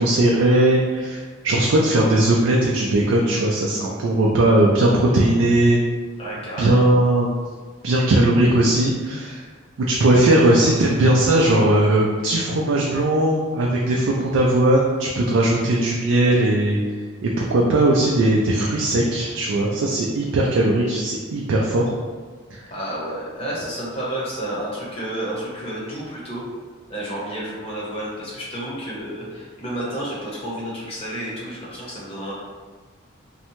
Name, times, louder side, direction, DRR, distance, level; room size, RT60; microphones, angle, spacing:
voice 1, 0.0-5.8 6.6-7.3 7.8-9.5 9.8-16.8 17.2-21.9 22.5-22.6, right 1 dB, 75° right, -2 dB, 0.3 m, -18 dB
voice 2, 6.2-6.8 22.7-26.4 26.9-32.4, right 1 dB, 30° left, -7 dB, 0.7 m, -30 dB
2.6 x 2.1 x 2.9 m, 1.5 s
head